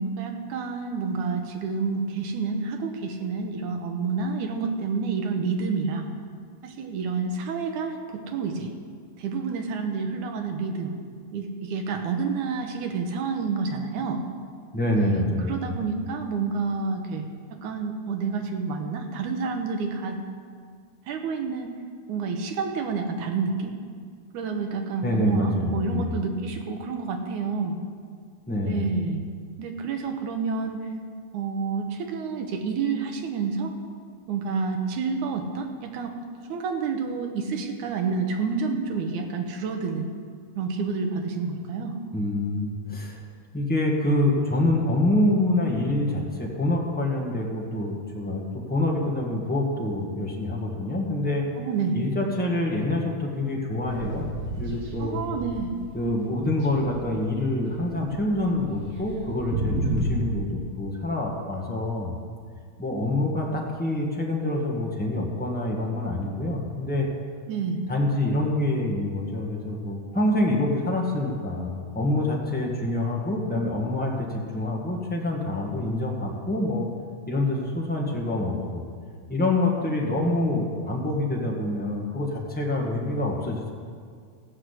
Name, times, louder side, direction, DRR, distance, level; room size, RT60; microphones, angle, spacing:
voice 1, 0.0-6.1 6.6-8.7 9.2-10.9 11.3-14.2 14.9-17.2 17.5-20.2 21.1-21.7 22.1-23.8 24.3-27.8 28.6-29.2 29.6-30.9 31.3-33.7 34.3-36.1 36.5-40.0 40.6-41.9 51.6-52.0 55.0-55.7 67.5-67.8, right 5 dB, 85° right, 4 dB, 2.6 m, -29 dB
voice 2, 14.7-15.8 25.0-26.1 28.5-28.8 42.1-43.2 43.5-51.5 51.9-55.2 55.9-62.1 62.8-67.1 67.9-76.9 77.3-78.8 79.3-83.7, left 1 dB, 5° left, -3 dB, 0.9 m, -26 dB
sound 1, 53.9-56.2 56.5-60.2, right 2 dB, 65° right, 2.7 m, -32 dB
15.0 x 6.2 x 8.3 m, 2.1 s
omnidirectional pair, 3.4 m